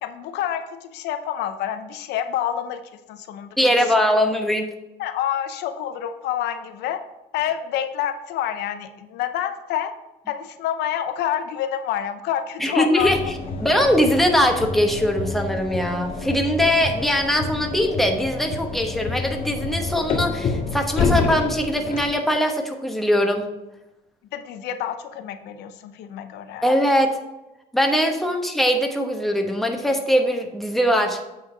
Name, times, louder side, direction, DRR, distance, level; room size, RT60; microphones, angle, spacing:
voice 1, 0.0-2.8 3.1-3.7 5.0-7.0 7.3-9.9 10.3-13.1 24.3-26.6, left 10 dB, 80° left, 9 dB, 0.6 m, -28 dB
voice 2, 3.6-4.7 12.6-13.2 13.6-23.4 26.6-27.2 27.7-31.2, equal, ahead, 3 dB, 1.0 m, -21 dB
sound 1, 13.0-22.1, left 4 dB, 60° left, 1.6 m, -28 dB
8.5 x 3.9 x 5.0 m, 0.98 s
cardioid pair, 110°, 17 cm